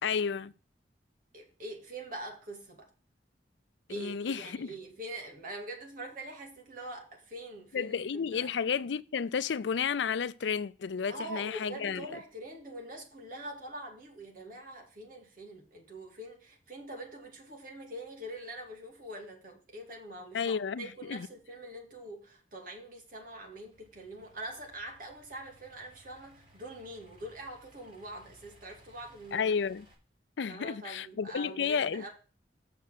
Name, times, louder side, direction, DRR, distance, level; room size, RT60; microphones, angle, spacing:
voice 1, 0.0-0.5 3.9-4.7 7.7-12.1 20.3-21.3 29.3-29.8 30.4-32.1, left 6 dB, 90° left, 0.5 m, -32 dB
voice 2, 1.3-2.9 3.9-8.5 11.1-29.5 30.5-32.1, right 1 dB, 50° right, 2.4 m, -44 dB
Idling / Accelerating revving vroom, 22.8-29.9, equal, 30° right, 3.4 m, -61 dB
6.8 x 6.2 x 6.7 m
head